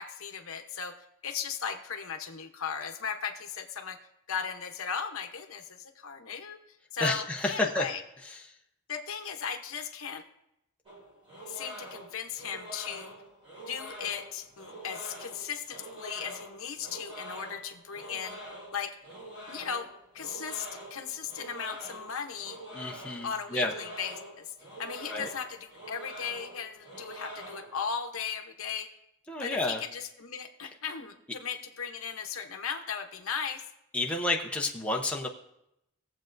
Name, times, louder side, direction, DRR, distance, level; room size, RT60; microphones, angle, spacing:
voice 1, 0.0-4.0 4.3-6.6 6.9-8.0 8.9-10.2 11.5-13.1 13.7-18.4 18.7-19.0 19.5-19.9 20.1-22.6 23.2-24.5 24.8-28.9 29.4-33.6, left 6 dB, 65° left, 6 dB, 0.9 m, -37 dB
voice 2, 7.0-7.9 22.7-23.7 25.1-25.3 29.3-29.8 33.9-35.3, left 2 dB, 5° left, 0 dB, 0.7 m, -30 dB
sound 1, 10.9-27.9, equal, 25° right, 3.4 m, -45 dB
18.5 x 7.5 x 2.6 m, 0.82 s
head